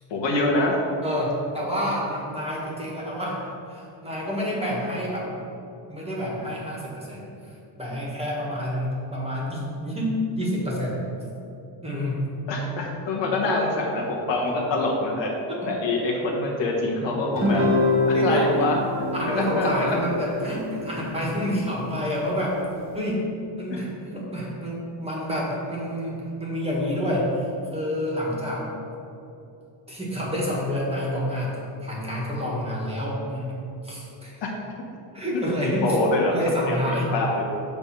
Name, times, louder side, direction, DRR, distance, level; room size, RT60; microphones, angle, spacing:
voice 1, 0.1-0.7 12.5-15.3 15.7-17.6 18.1-20.0 23.0-23.1 23.7-23.8 34.4-34.5 35.3-36.3 36.7-37.3, left 2 dB, 80° left, -1 dB, 1.4 m, -25 dB
voice 2, 1.0-5.3 5.9-11.0 11.8-12.2 15.5-15.7 17.0-17.1 18.1-18.6 19.1-22.6 22.9-23.1 23.6-28.7 29.9-31.5 31.8-33.5 33.8-34.4 35.1-36.0 36.3-37.1, equal, 15° right, -4 dB, 1.3 m, -28 dB
Guitar, 17.3-22.0, left 1 dB, 30° right, 1.1 m, -26 dB
6.8 x 3.5 x 5.8 m, 2.8 s
cardioid pair, 155°, 43 cm